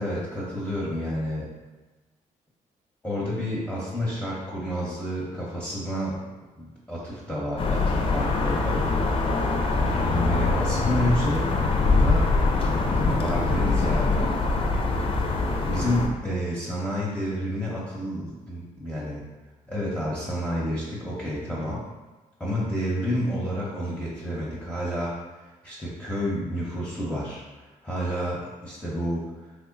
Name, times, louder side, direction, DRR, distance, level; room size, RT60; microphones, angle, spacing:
voice 1, 0.0-1.5 3.0-6.2 6.6-8.9 10.2-12.3 12.8-14.4 15.6-19.2 19.7-21.8 22.4-27.4 27.8-29.2, equal, 10° left, -7 dB, 0.8 m, -30 dB
sound 1, 7.6-16.1, left 3 dB, 35° left, 0.5 m, -23 dB
3.2 x 2.1 x 3.8 m, 1.2 s
supercardioid pair, 70°, 15 cm